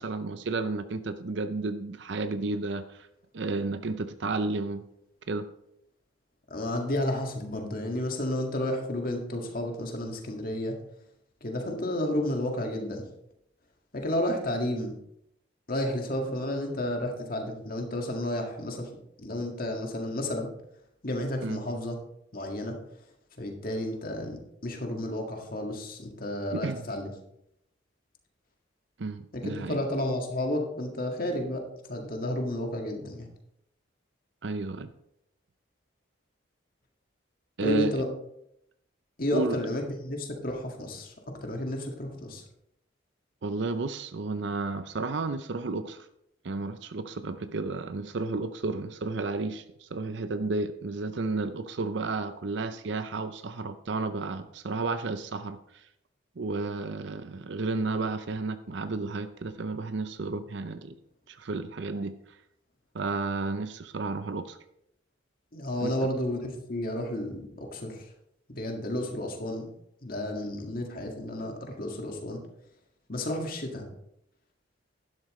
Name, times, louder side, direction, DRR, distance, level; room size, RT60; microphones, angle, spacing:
voice 1, 0.0-3.1 3.3-4.8 5.3-5.5 21.4-21.6 26.5-26.9 29.0-29.8 34.4-34.9 37.6-37.9 39.3-39.6 43.4-46.1 46.4-55.9 56.4-60.9 61.3-62.2 62.9-64.6 65.8-65.9, right 3 dB, 65° right, 11 dB, 0.6 m, -32 dB
voice 2, 6.5-10.8 11.4-13.1 13.9-14.9 15.7-18.9 19.2-20.5 21.0-22.0 22.3-22.8 23.4-27.1 29.3-31.6 31.9-33.3 37.6-38.1 39.2-42.4 65.5-68.1 68.5-69.7 70.0-72.4 73.1-73.9, left 1 dB, 50° left, 2 dB, 1.9 m, -31 dB
11.5 x 11.0 x 3.2 m, 0.78 s
head